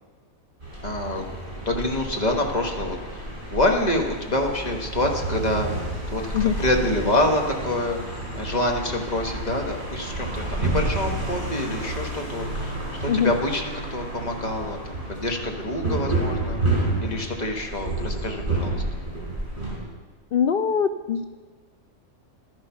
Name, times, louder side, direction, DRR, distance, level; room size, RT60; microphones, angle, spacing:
sound 1, 0.6-19.8, right 2 dB, 35° right, 4.2 m, -30 dB
voice 1, 0.8-1.2 1.7-5.7 6.1-18.8, left 1 dB, 30° left, 2 dB, 1.4 m, -27 dB
voice 2, 20.3-21.2, left 7 dB, 85° left, 9 dB, 0.4 m, -22 dB
11.5 x 10.5 x 5.8 m, 1.5 s
omnidirectional pair, 1.5 m